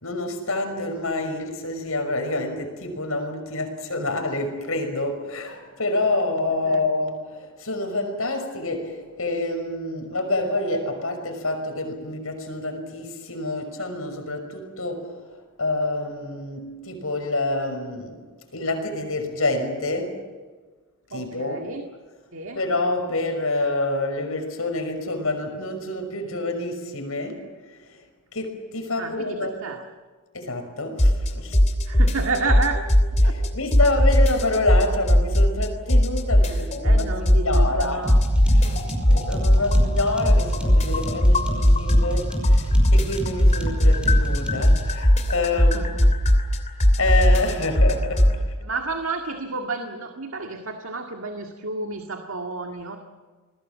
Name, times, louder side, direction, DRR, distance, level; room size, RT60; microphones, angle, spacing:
voice 1, 0.0-18.3 18.5-20.2 21.1-21.7 22.5-28.0 28.3-29.6 30.3-31.6 33.2-38.1 38.5-46.1 47.0-48.6, left 2 dB, 75° left, 6 dB, 5.8 m, -27 dB
voice 2, 21.1-21.8 22.3-22.6 29.0-29.8 31.9-32.8 33.2-33.3 36.8-38.2 38.4-39.0 45.5-46.0 48.6-53.0, right 3 dB, 65° right, 4 dB, 2.0 m, -31 dB
sound 1, 31.0-31.3 31.5-33.5 33.7-35.6 35.9-37.8 38.1-42.2 42.4-48.3, left 1 dB, 30° left, 2.9 m, -17 dB
sound 2, 38.0-44.9, equal, 5° right, 5.5 m, -30 dB
28.0 x 21.0 x 7.5 m, 1.4 s
head